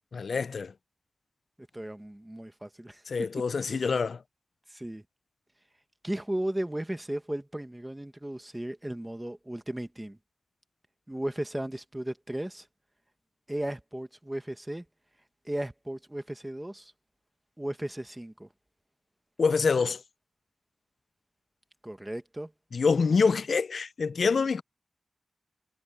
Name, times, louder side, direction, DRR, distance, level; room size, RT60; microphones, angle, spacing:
voice 1, 0.1-0.7 3.1-4.2 19.4-20.0 22.7-24.6, left 5 dB, 75° left, 0.4 m, -26 dB
voice 2, 1.7-3.0 3.4-3.9 4.7-5.0 6.0-10.2 11.1-12.7 13.5-14.8 15.4-16.9 17.6-18.5 21.8-22.5, right 1 dB, 10° right, 1.4 m, -35 dB
wide cardioid pair, 95°, 0 cm